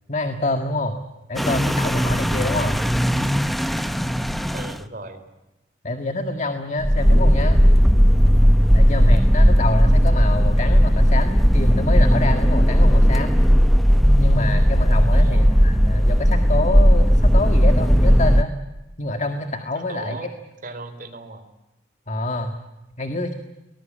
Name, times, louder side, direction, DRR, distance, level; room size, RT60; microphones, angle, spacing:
voice 1, 0.1-1.0 1.3-2.8 5.8-7.6 8.7-13.4 14.2-18.5 19.0-20.3 22.1-22.5 23.0-23.3, left 2 dB, 40° left, 6 dB, 1.8 m, -26 dB
sound 1, 1.4-4.8 6.8-18.4, equal, ahead, 0.8 m, -16 dB
voice 2, 4.5-5.2 15.1-15.6 19.7-20.3 20.6-21.4, right 2 dB, 50° right, 7 dB, 3.7 m, -37 dB
23.0 x 20.5 x 8.7 m, 1.0 s
head